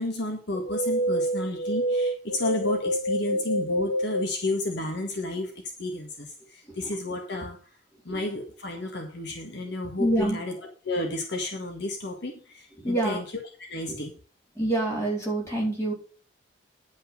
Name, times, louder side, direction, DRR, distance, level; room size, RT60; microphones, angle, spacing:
voice 1, 0.0-7.6 8.0-13.2 13.7-14.1, left 2 dB, 60° left, 2 dB, 1.7 m, -32 dB
sound 1, 0.5-4.3, equal, 85° left, 0.9 m, -27 dB
voice 2, 10.0-10.4 12.8-13.2 13.9-14.0 14.6-15.9, right 1 dB, 15° left, -3 dB, 4.0 m, -26 dB
10.5 x 5.6 x 5.4 m, 0.38 s
head